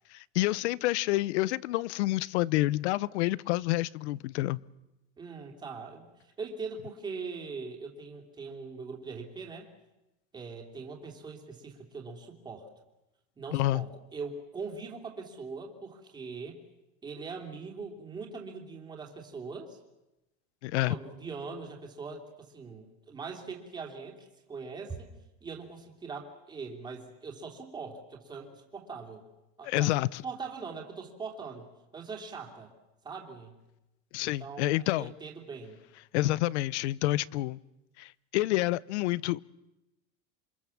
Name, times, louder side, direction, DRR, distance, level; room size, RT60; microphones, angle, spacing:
voice 1, 0.1-4.6 13.5-13.8 20.6-20.9 29.6-30.2 34.1-35.1 36.1-37.6 38.0-39.4, left 17 dB, 80° left, 0.8 m, -28 dB
voice 2, 5.2-9.7 10.3-12.7 13.4-16.6 17.0-19.8 20.9-25.1 25.4-29.3 29.6-29.9 30.2-32.7 33.0-33.6 34.2-35.8, right 4 dB, 15° right, 3.0 m, -41 dB
27.5 x 25.0 x 7.2 m
cardioid pair, 175°, 33 cm